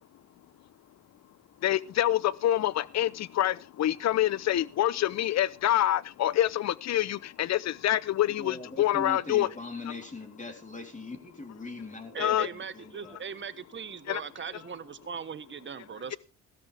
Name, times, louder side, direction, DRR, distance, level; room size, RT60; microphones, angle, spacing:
voice 1, 1.6-9.5 12.2-12.5 14.1-14.2, left 12 dB, 60° left, 0.7 m, -26 dB
voice 2, 8.4-13.2, left 3 dB, 25° left, 3.6 m, -41 dB
voice 3, 12.1-16.2, right 6 dB, 40° right, 1.3 m, -39 dB
16.0 x 13.5 x 3.5 m
cardioid pair, 90°, 30 cm